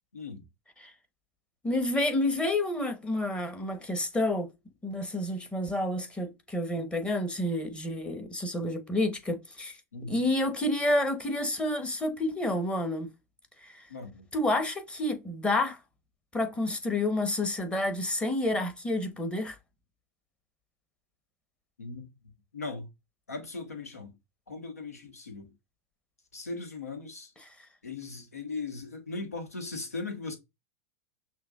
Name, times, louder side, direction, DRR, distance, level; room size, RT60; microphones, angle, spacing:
voice 1, 0.1-0.4 9.9-10.2 13.9-14.3 21.8-22.1 22.5-22.9 23.3-24.1 24.5-25.5 26.3-27.3 27.8-30.4, left 3 dB, 90° left, 1.1 m, -38 dB
voice 2, 1.6-4.5 4.8-9.8 10.1-13.1 13.6-13.9 14.3-15.8 16.3-19.6 27.5-27.6, left 1 dB, 10° left, 0.9 m, -29 dB
5.8 x 2.2 x 2.3 m
hypercardioid pair, 95°, 8 cm